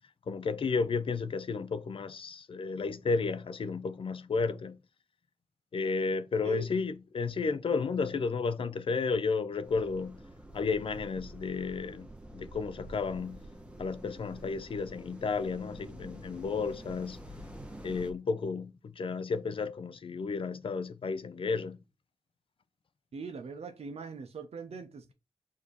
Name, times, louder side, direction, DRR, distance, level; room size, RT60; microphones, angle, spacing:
voice 1, 0.3-4.8 5.7-10.2 10.5-12.1 12.3-13.4 13.8-17.2 17.8-21.8, left 4 dB, 50° left, 0.4 m, -32 dB
sound 1, 9.6-18.1, right 1 dB, 10° right, 0.9 m, -47 dB
voice 2, 23.1-25.1, right 5 dB, 60° right, 0.7 m, -41 dB
4.9 x 2.7 x 4.0 m
wide cardioid pair, 95°, 12 cm